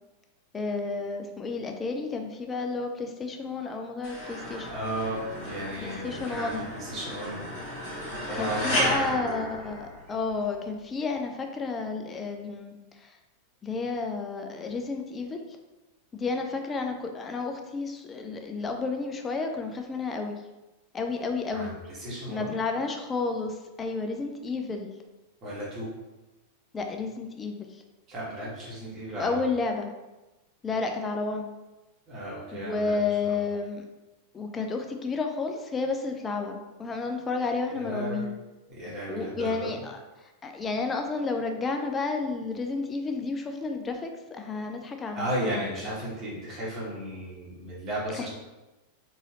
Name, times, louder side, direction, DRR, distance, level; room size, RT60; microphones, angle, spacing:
voice 1, 0.5-4.7 5.8-6.7 8.3-13.2 13.6-15.4 16.1-20.4 20.9-21.8 22.3-24.9 26.7-27.8 29.2-29.9 30.6-31.5 32.5-33.8 34.3-38.4 39.1-45.8 48.1-48.3, left 4 dB, 20° left, 4 dB, 0.4 m, -31 dB
sound 1, 4.0-10.3, equal, 40° left, 1.2 m, -33 dB
voice 2, 4.7-9.4 21.5-22.5 25.4-25.9 28.1-29.4 32.1-32.9 33.2-33.4 37.7-38.2 38.7-39.7 45.1-48.3, right 1 dB, 30° right, -6 dB, 1.4 m, -35 dB
4.0 x 2.8 x 2.4 m, 1.1 s
figure-of-eight pair, 90°, 0 cm